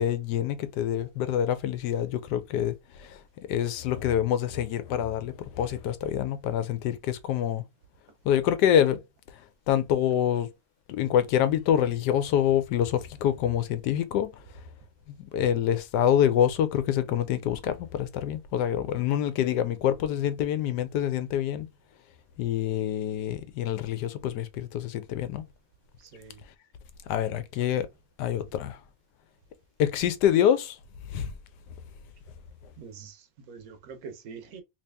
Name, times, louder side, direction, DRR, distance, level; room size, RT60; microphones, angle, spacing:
voice 1, 0.0-2.7 3.0-3.1 3.5-7.6 8.2-9.0 9.7-10.5 10.9-14.3 15.3-21.7 22.4-25.4 27.1-27.9 28.2-28.8 29.8-30.8 31.1-31.3, left 10 dB, 85° left, 1.2 m, -26 dB
voice 2, 26.0-26.4 32.8-34.6, right 6 dB, 65° right, 1.1 m, -45 dB
3.2 x 2.8 x 3.3 m
omnidirectional pair, 1.7 m